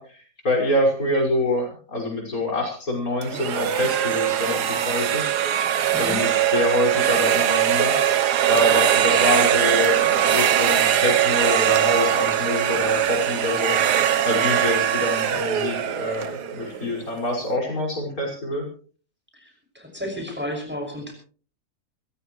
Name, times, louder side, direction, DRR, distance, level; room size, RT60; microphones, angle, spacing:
voice 1, 0.0-5.3 6.0-7.9 8.5-13.8 14.2-18.7, left 1 dB, 60° left, 0 dB, 6.5 m, -25 dB
sound 1, 3.2-17.1, right 10 dB, 80° right, 1.6 m, -21 dB
voice 2, 19.3-21.1, left 1 dB, 5° right, 2 dB, 6.0 m, -32 dB
24.5 x 16.5 x 3.2 m, 0.41 s
omnidirectional pair, 1.7 m